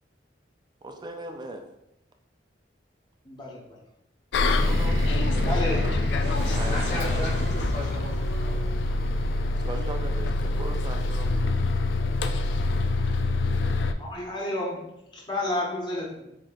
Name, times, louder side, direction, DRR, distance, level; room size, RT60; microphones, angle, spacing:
voice 1, 0.8-1.7 4.6-6.0 6.5-7.3 9.6-11.5, right 2 dB, 25° right, 5 dB, 0.5 m, -39 dB
voice 2, 3.2-3.6 5.4-5.9 14.0-16.4, left 1 dB, 25° left, -3 dB, 1.1 m, -31 dB
Bus, 4.3-13.9, left 2 dB, 85° left, 0.4 m, -25 dB
sound 1, 4.5-11.1, equal, 65° right, 1.2 m, -35 dB
voice 3, 6.7-9.2, equal, 45° left, -2 dB, 1.3 m, -37 dB
7.3 x 2.8 x 2.5 m, 0.83 s
head